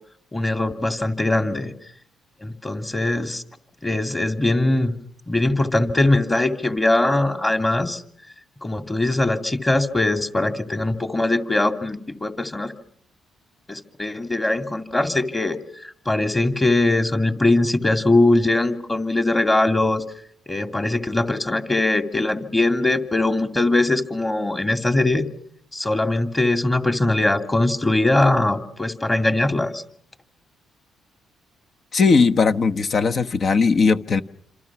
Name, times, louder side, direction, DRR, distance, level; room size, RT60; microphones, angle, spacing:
voice 1, 0.3-1.7 2.4-3.4 3.8-4.9 5.3-8.0 8.6-12.7 13.7-15.6 15.8-20.0 20.5-25.3 25.7-29.8, left 2 dB, 15° left, 8 dB, 2.4 m, -21 dB
voice 2, 31.9-34.2, left 4 dB, 50° left, 8 dB, 1.2 m, -18 dB
27.5 x 26.5 x 6.0 m, 0.64 s
cardioid pair, 90°, 0 cm